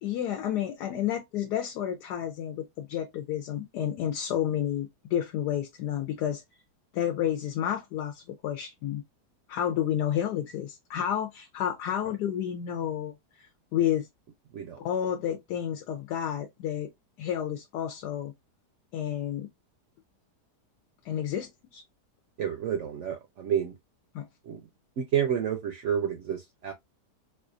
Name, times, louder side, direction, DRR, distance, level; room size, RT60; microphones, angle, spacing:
voice 1, 0.0-6.4 6.9-9.0 9.5-14.1 14.8-16.9 17.2-18.3 18.9-19.5 21.0-21.8 24.1-24.3, left 10 dB, 75° left, 1.2 m, -30 dB
voice 2, 22.4-23.7 24.4-24.6 25.0-26.7, right 8 dB, 65° right, 0.7 m, -29 dB
4.2 x 2.4 x 2.5 m
omnidirectional pair, 1.8 m